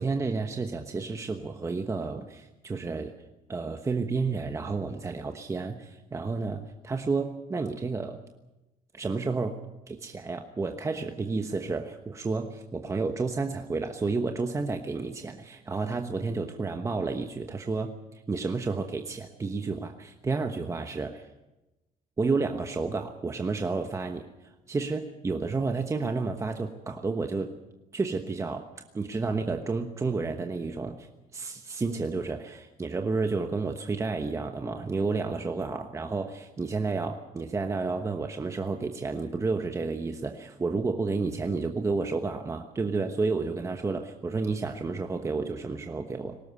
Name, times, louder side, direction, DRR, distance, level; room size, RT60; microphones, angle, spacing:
voice 1, 0.0-3.1 3.5-8.2 8.9-9.6 9.9-21.3 22.2-27.5 27.9-28.7 28.9-46.4, right 4 dB, 20° right, 5 dB, 1.1 m, -31 dB
20.0 x 18.0 x 8.3 m, 1.0 s
cardioid pair, 150°, 16 cm